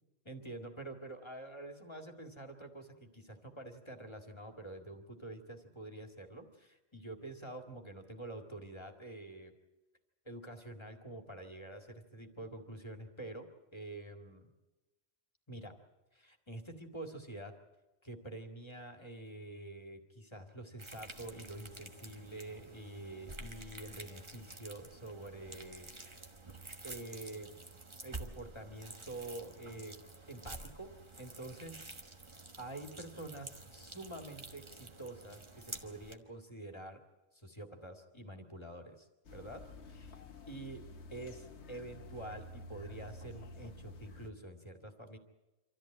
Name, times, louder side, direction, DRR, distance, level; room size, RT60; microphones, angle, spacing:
voice 1, 0.2-9.5 10.3-13.5 13.7-14.5 15.5-15.7 16.1-17.5 18.0-26.3 26.8-27.5 28.0-30.0 30.3-30.9 31.2-31.9 32.6-37.0 37.3-40.1 40.5-40.8 41.1-45.2, right 2 dB, 25° left, 4 dB, 2.1 m, -47 dB
sound 1, 20.8-36.2, right 2 dB, 25° right, 1.4 m, -50 dB
sound 2, 39.2-44.3, left 1 dB, 75° left, 1.5 m, -51 dB
26.0 x 14.0 x 8.8 m, 1.1 s
omnidirectional pair, 1.2 m